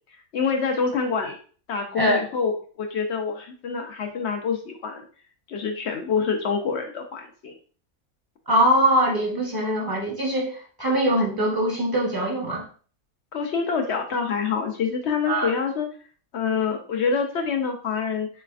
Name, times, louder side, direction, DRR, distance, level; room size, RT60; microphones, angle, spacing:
voice 1, 0.3-1.4 1.7-2.5 2.8-5.0 5.5-7.5 13.3-15.9 16.3-18.3, left 5 dB, 70° left, 4 dB, 0.6 m, -26 dB
voice 2, 8.5-12.6 15.3-15.5, right 1 dB, 20° right, -2 dB, 0.6 m, -22 dB
4.0 x 3.2 x 2.3 m, 0.42 s
omnidirectional pair, 1.6 m